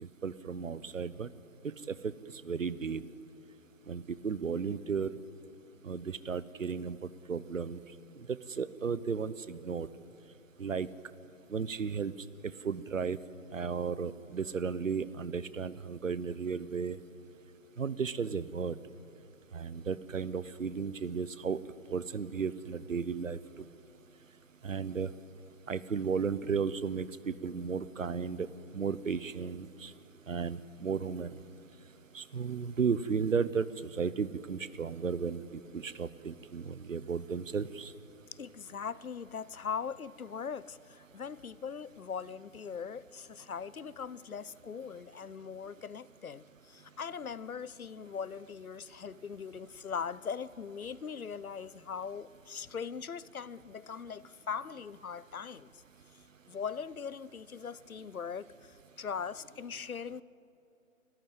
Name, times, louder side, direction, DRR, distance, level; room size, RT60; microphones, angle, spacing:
voice 1, 0.2-1.3 1.9-2.1 2.4-3.0 3.9-5.1 5.8-7.0 7.3-7.8 8.6-9.9 10.6-10.9 11.5-12.1 12.6-13.2 13.5-17.0 17.8-18.8 19.5-21.6 21.9-23.4 24.6-25.1 25.7-28.5 28.7-29.9 30.3-31.3 32.1-33.7 34.0-37.9, right 6 dB, 65° right, 0.9 m, -34 dB
voice 2, 38.3-55.8 56.5-60.2, left 6 dB, 85° left, 0.7 m, -40 dB
23.5 x 14.0 x 9.1 m
figure-of-eight pair, 145°, 42 cm